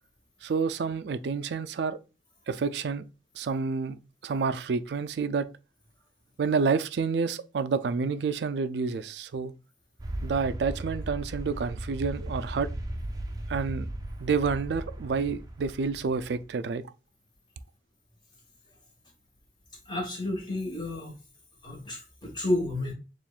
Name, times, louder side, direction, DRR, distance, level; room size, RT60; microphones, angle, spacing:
voice 1, 0.4-2.0 2.5-3.0 3.4-5.5 6.4-9.5 10.2-12.7 13.5-13.9 14.2-16.8, right 5 dB, 80° right, 0.4 m, -29 dB
sound 1, 10.0-16.5, right 1 dB, 20° right, 0.5 m, -37 dB
voice 2, 19.9-21.1 21.6-22.9, left 1 dB, 25° left, 1.2 m, -31 dB
7.1 x 2.5 x 2.3 m
head